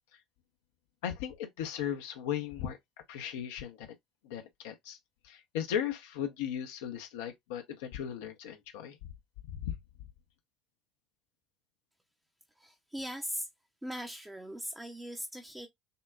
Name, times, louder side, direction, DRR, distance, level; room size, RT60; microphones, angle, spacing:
voice 1, 1.0-2.8 3.1-4.0 4.2-5.0 5.2-9.0 9.5-9.8, left 9 dB, 70° left, 0.7 m, -37 dB
voice 2, 12.6-13.5 13.8-15.7, equal, 10° right, 0.8 m, -40 dB
6.6 x 2.2 x 2.3 m
figure-of-eight pair, 60°, 0 cm